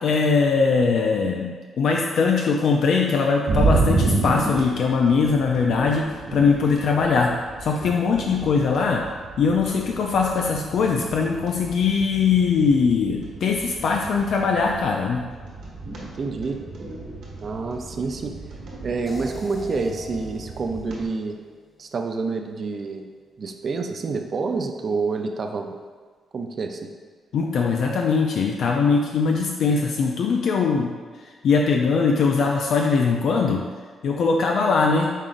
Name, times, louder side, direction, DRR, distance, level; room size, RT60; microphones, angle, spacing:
voice 1, 0.0-1.5 1.8-7.3 7.6-9.0 9.4-15.2 27.3-30.9 31.4-33.6 34.0-35.1, left 5 dB, 70° left, 0 dB, 0.4 m, -21 dB
sound 1, 3.5-21.0, right 3 dB, 75° right, 1.3 m, -31 dB
voice 2, 16.0-16.6 17.4-18.4 18.8-21.4 21.8-23.1 23.4-25.7 26.3-26.9, right 4 dB, 45° right, 5 dB, 0.4 m, -28 dB
sound 2, 19.1-22.1, left 1 dB, 15° left, 1.2 m, -44 dB
5.3 x 3.7 x 2.5 m, 1.5 s
cardioid pair, 95°, 0 cm